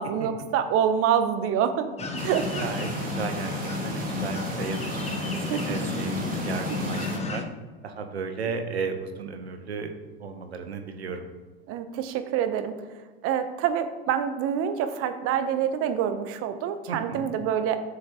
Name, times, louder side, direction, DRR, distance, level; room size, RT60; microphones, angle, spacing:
voice 1, 0.0-1.9 2.1-2.7 4.4-4.6 5.5-5.6 11.7-12.8 13.2-17.8, right 8 dB, 45° right, 9 dB, 0.9 m, -26 dB
sound 1, 2.0-7.4, left 4 dB, 20° left, 0.9 m, -31 dB
sound 2, 2.2-7.2, right 3 dB, 25° right, 1.5 m, -36 dB
voice 2, 2.6-3.5 3.8-7.4 7.8-9.9 10.2-11.3 16.9-17.3, right 5 dB, 90° right, 7 dB, 0.9 m, -34 dB
9.3 x 6.6 x 2.9 m, 1.4 s
hypercardioid pair, 85°, 31 cm